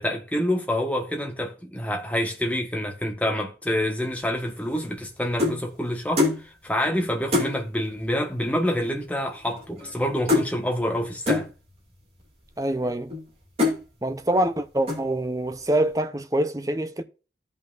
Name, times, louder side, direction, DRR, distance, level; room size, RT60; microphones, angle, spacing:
voice 1, 0.0-11.5, left 1 dB, 10° left, 1.4 m, -27 dB
sound 1, 4.5-5.6 6.2-6.4 6.8-6.9 7.3-7.5 8.4-8.5 8.7-9.1 9.3-10.0 10.3-10.5 11.3-11.5 12.2-12.3 12.9-13.2 13.6-13.8 14.3-14.6 14.9-15.2, left 3 dB, 35° right, 2.8 m, -25 dB
voice 2, 12.6-13.1 14.0-17.0, right 1 dB, 20° right, 0.6 m, -25 dB
15.0 x 5.5 x 2.6 m
head